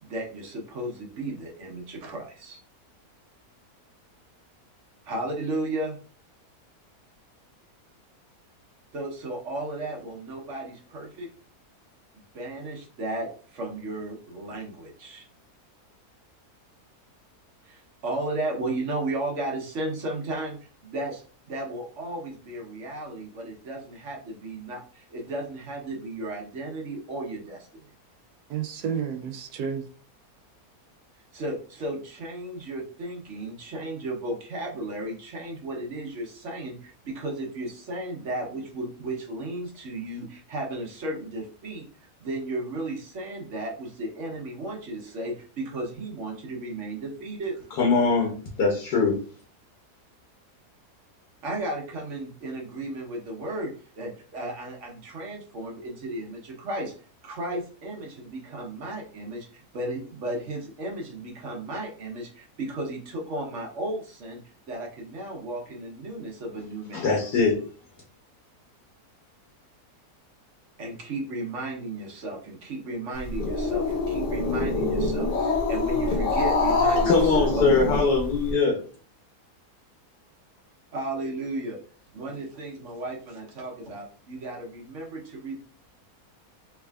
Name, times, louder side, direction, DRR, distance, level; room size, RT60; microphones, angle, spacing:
voice 1, 0.0-2.6 5.0-6.0 8.9-11.3 12.3-15.3 17.6-21.2 21.5-27.7 31.3-41.8 42.2-47.6 51.4-56.9 57.2-64.4 64.7-67.1 70.8-77.6 80.9-81.8 82.1-85.6, right 1 dB, 55° right, 1.2 m, -34 dB
voice 2, 28.5-29.9, right 7 dB, 80° right, 1.1 m, -31 dB
voice 3, 47.8-48.3 48.6-49.2 66.9-67.6 77.0-78.8, left 4 dB, 80° left, 1.5 m, -22 dB
Growling, 73.2-78.5, left 3 dB, 55° left, 0.5 m, -25 dB
3.5 x 3.3 x 2.4 m
omnidirectional pair, 1.7 m